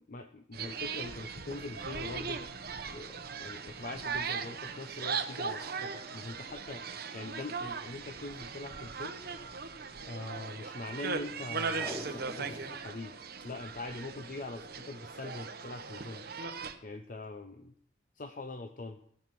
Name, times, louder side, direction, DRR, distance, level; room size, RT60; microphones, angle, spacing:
voice 1, 0.1-2.4 2.9-9.2 10.0-13.1 13.4-16.2 16.8-17.7 18.2-19.0, left 2 dB, 50° left, 7 dB, 0.7 m, -43 dB
sound 1, 0.5-16.7, right 5 dB, 60° right, 1.0 m, -39 dB
Packing tape duct tape, 11.6-12.8 13.1-13.2 13.4-13.5 14.1-14.4 15.4-15.6 16.2-16.3, equal, 10° left, 3.2 m, -44 dB
17.5 x 7.3 x 6.0 m, 0.68 s
head